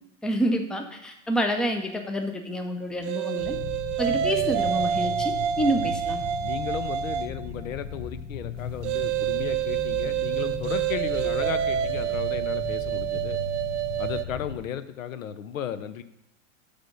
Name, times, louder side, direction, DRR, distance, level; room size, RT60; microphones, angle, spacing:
voice 1, 0.2-3.6 4.0-6.2, equal, ahead, 5 dB, 0.5 m, -28 dB
sound 1, 3.0-7.4 8.8-14.2, right 10 dB, 65° right, 0.6 m, -27 dB
sound 2, 3.4-14.6, left 4 dB, 60° left, 1.6 m, -37 dB
voice 2, 6.4-13.4 14.0-16.0, left 9 dB, 90° left, 13 dB, 0.6 m, -34 dB
8.9 x 3.6 x 5.3 m, 0.84 s
hypercardioid pair, 110°, 39 cm